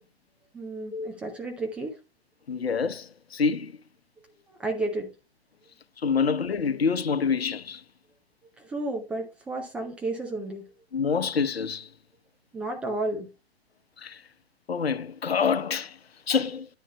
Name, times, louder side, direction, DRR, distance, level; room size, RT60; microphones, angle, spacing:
voice 1, 0.5-2.0 4.5-5.1 8.6-10.7 12.5-13.3, right 2 dB, 5° right, 0.4 m, -32 dB
voice 2, 2.5-3.7 6.0-7.8 10.9-11.9 14.0-14.2 14.7-16.0 16.3-16.7, left 5 dB, 70° left, 0.9 m, -26 dB
10.0 x 9.8 x 2.2 m
figure-of-eight pair, 120°, 32 cm